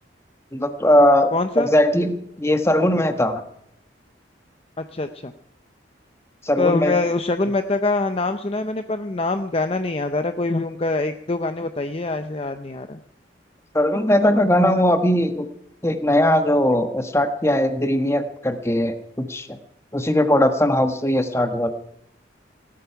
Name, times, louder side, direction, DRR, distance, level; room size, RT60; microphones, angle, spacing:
voice 1, 0.5-3.4 6.4-7.0 13.7-15.5 15.8-19.6 19.9-21.7, left 1 dB, 15° left, 8 dB, 1.2 m, -19 dB
voice 2, 1.3-1.7 4.8-5.3 6.6-13.0, left 3 dB, 30° left, 9 dB, 0.6 m, -24 dB
17.5 x 12.5 x 5.8 m, 0.74 s
head